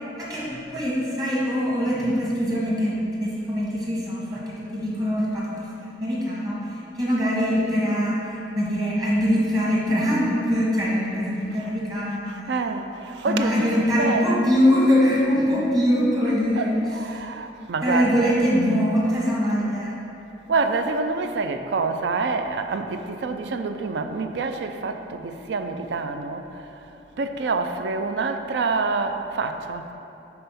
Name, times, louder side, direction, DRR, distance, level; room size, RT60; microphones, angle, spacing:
voice 1, 0.2-12.5 13.3-16.7 17.8-20.0, equal, 25° right, -5 dB, 1.5 m, -23 dB
voice 2, 12.3-13.7 14.0-14.4 16.6-16.7 16.9-18.2 20.5-26.7 27.2-29.9, right 4 dB, 70° right, 7 dB, 0.4 m, -27 dB
5.6 x 4.3 x 5.8 m, 2.9 s
head